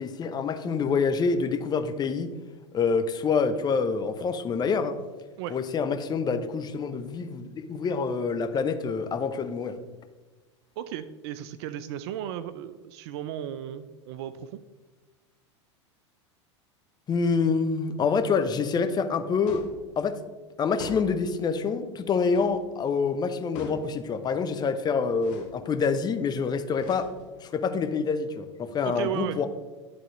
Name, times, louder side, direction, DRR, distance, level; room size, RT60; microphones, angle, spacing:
voice 1, 0.0-2.3 2.7-5.0 5.5-9.8 17.1-19.6 20.0-20.2 20.6-27.1 27.4-29.5, left 5 dB, 25° left, 9 dB, 0.7 m, -26 dB
voice 2, 10.8-14.6 28.8-29.4, right 11 dB, 60° right, 13 dB, 0.4 m, -35 dB
sound 1, 19.5-19.8 20.8-21.3 22.3-22.6 23.5-24.0 25.2-25.6 26.8-27.4, left 4 dB, 55° left, 1.4 m, -42 dB
11.5 x 3.9 x 3.1 m, 1.3 s
hypercardioid pair, 95°, 16 cm